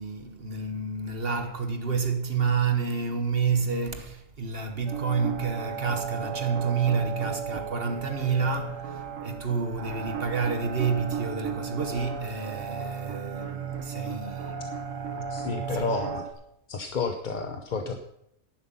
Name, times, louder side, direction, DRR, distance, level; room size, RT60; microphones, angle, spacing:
voice 1, 0.0-16.1, right 5 dB, 50° right, 1.5 m, -29 dB
sound 1, 4.9-16.3, right 6 dB, 75° right, 1.5 m, -35 dB
voice 2, 15.3-16.3 16.7-18.0, left 5 dB, 45° left, 0.8 m, -31 dB
11.0 x 10.5 x 5.6 m
omnidirectional pair, 1.3 m